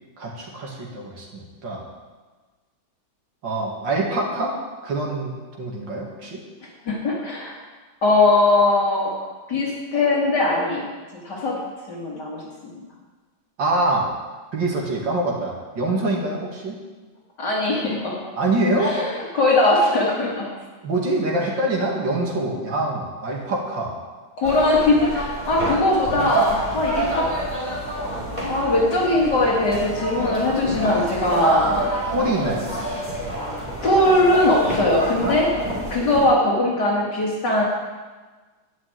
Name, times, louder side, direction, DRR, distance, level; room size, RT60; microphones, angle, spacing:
voice 1, 0.2-1.9 3.4-4.5 4.8-6.4 13.6-14.1 14.5-16.8 18.4-18.9 20.8-24.0 32.1-32.7, right 2 dB, 65° right, -2 dB, 2.8 m, -25 dB
voice 2, 6.9-7.6 8.0-9.1 9.5-10.9 11.2-11.6 11.9-12.8 17.4-18.2 18.8-20.5 24.4-27.3 28.5-31.7 33.8-35.5 35.9-37.6, left 2 dB, 60° left, -3 dB, 2.8 m, -20 dB
sound 1, 24.4-36.3, right 1 dB, 20° right, 4.2 m, -28 dB
11.5 x 6.1 x 9.1 m, 1.3 s
omnidirectional pair, 2.1 m